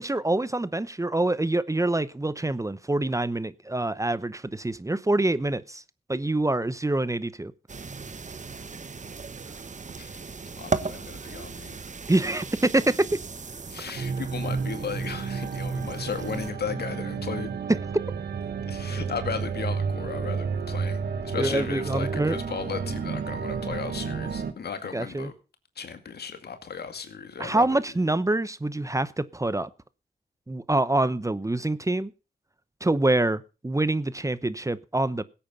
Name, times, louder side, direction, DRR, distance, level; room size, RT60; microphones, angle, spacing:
voice 1, 0.0-5.8 6.1-7.5 12.1-13.2 17.7-17.8 21.4-22.4 24.9-25.3 27.4-29.7 30.5-32.1 32.8-35.2, right 2 dB, 20° right, 0.9 m, -25 dB
sound 1, 7.7-16.5, right 4 dB, 45° right, 1.1 m, -37 dB
voice 2, 10.6-11.8 13.7-17.5 18.7-25.3 25.8-27.8, left 6 dB, 75° left, 2.2 m, -35 dB
sound 2, 14.0-24.5, right 5 dB, 75° right, 1.4 m, -31 dB
16.5 x 8.8 x 5.4 m
cardioid pair, 45°, 17 cm